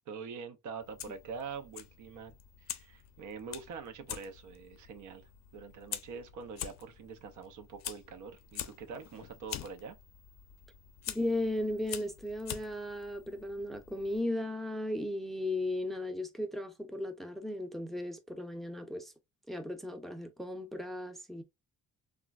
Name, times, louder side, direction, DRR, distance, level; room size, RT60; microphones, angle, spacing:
voice 1, 0.1-2.3 2.6-10.0, right 5 dB, 75° right, 0.6 m, -44 dB
Fire, 0.8-14.2, left 11 dB, 65° left, 0.5 m, -46 dB
voice 2, 11.1-19.1 19.5-21.4, left 1 dB, ahead, 0.5 m, -36 dB
3.0 x 2.3 x 2.3 m
cardioid pair, 90°, 30 cm